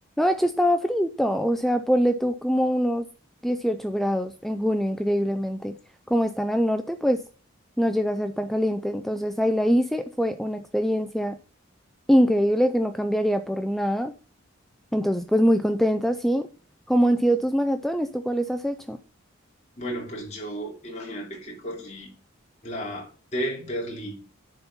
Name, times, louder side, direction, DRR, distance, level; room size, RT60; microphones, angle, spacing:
voice 1, 0.2-3.1 3.4-5.8 6.1-7.2 7.8-11.4 12.1-14.1 14.9-16.5 16.9-19.0, equal, ahead, 0.4 m, -23 dB
voice 2, 19.8-22.1 22.6-24.2, equal, 35° left, 3.1 m, -33 dB
10.5 x 4.3 x 5.6 m
head